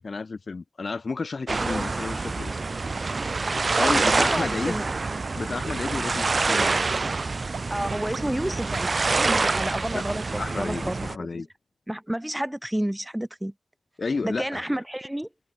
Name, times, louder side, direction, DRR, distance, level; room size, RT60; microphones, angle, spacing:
voice 1, 0.0-2.6 3.8-4.8 5.3-6.8 9.9-10.1 10.4-11.5 14.0-14.6, left 4 dB, 50° left, 1.5 m, -31 dB
sound 1, 1.5-11.2, right 3 dB, 45° right, 0.7 m, -26 dB
sound 2, 2.7-2.8 3.3-3.4 3.9-4.0 4.5-4.6 5.1-5.2 5.7-5.8 6.3-6.4 6.9-7.0 7.5-7.6 8.1-8.2 8.7-8.8, right 6 dB, 85° right, 0.8 m, -40 dB
voice 2, 3.7-4.9 7.7-10.2 10.6-11.5 11.9-13.5 14.2-15.3, right 1 dB, 10° right, 1.5 m, -30 dB
wide cardioid pair, 85°, 0 cm